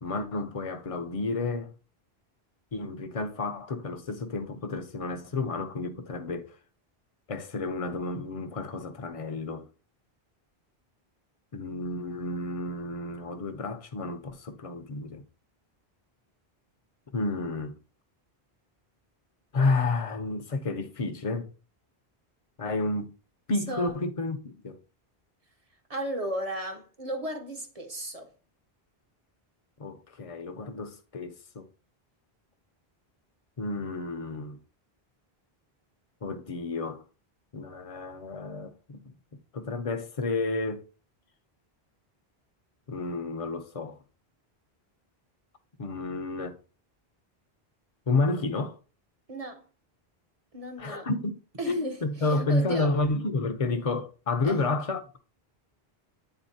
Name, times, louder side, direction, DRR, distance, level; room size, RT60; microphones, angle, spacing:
voice 1, 0.0-1.7 2.7-6.6 7.3-9.7 11.5-15.2 17.1-17.8 19.5-21.5 22.6-23.1 23.5-24.8 29.8-31.7 33.6-34.6 36.2-37.0 37.5-39.1 39.5-40.9 42.9-44.0 45.8-46.6 48.1-48.8 50.8-51.3 51.6-55.2, left 3 dB, 40° left, 0.7 m, -31 dB
voice 2, 25.9-28.3 49.3-49.7 50.5-51.1 51.6-52.9 54.4-54.6, right 1 dB, 40° right, 0.9 m, -35 dB
8.9 x 4.0 x 2.7 m
omnidirectional pair, 1.0 m